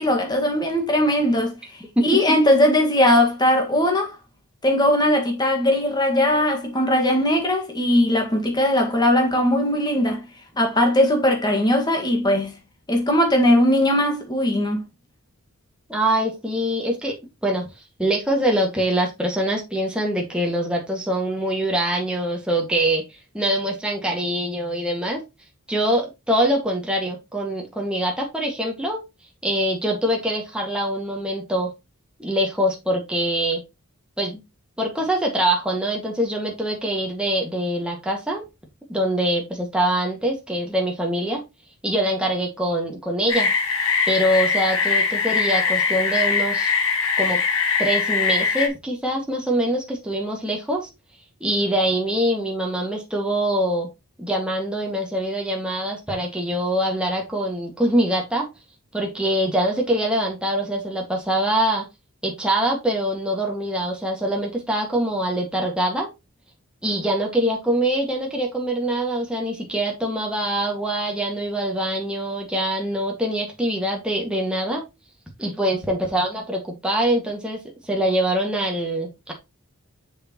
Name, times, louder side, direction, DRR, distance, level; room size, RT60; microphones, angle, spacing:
voice 1, 0.0-4.2 4.6-10.2 10.6-12.6 12.9-14.8, left 1 dB, 20° left, 1.8 m, -19 dB
voice 2, 2.0-2.4 15.9-17.2 17.4-17.7 18.0-23.0 23.3-25.2 25.7-29.0 29.4-31.7 32.2-33.6 34.2-34.4 34.8-38.4 38.9-41.4 41.8-43.5 44.1-46.7 47.2-47.4 47.8-50.9 51.4-53.9 54.2-58.5 58.9-61.9 62.2-66.1 66.8-74.8 75.4-79.3, right 1 dB, 5° right, 2.0 m, -24 dB
sound 1, 43.3-48.7, left 5 dB, 70° left, 1.9 m, -22 dB
6.7 x 6.6 x 3.0 m
head